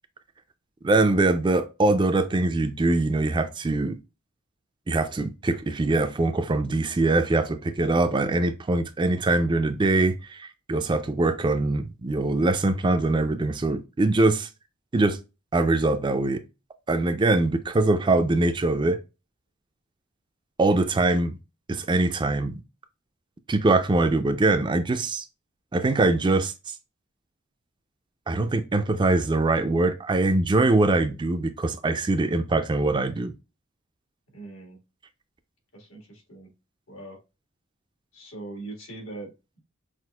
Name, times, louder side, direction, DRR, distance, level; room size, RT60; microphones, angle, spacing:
voice 1, 0.8-4.0 4.9-14.5 14.9-15.2 15.5-16.4 16.9-19.0 20.6-21.4 21.7-22.6 23.5-25.2 25.7-26.5 28.3-33.3, right 2 dB, 25° right, 0.4 m, -23 dB
voice 2, 34.3-34.8 35.7-36.5 36.9-37.2 38.1-39.6, right 2 dB, 85° left, 1.8 m, -41 dB
5.9 x 2.5 x 2.3 m
head